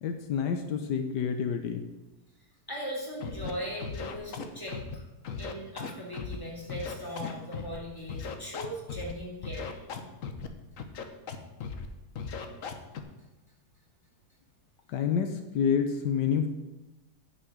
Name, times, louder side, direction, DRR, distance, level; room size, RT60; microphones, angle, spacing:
voice 1, 0.0-1.9 14.9-16.5, left 7 dB, 80° left, 6 dB, 1.5 m, -28 dB
voice 2, 2.7-4.8 5.4-9.7, equal, 10° left, -4 dB, 3.5 m, -39 dB
Scratching (performance technique), 3.2-3.5 3.8-4.9 5.2-6.4 6.7-7.8 8.1-9.1 9.4-10.5 10.8-11.4 11.6-11.9 12.2-13.0, left 6 dB, 55° left, 1.3 m, -37 dB
9.7 x 6.1 x 7.8 m, 1.1 s
omnidirectional pair, 1.8 m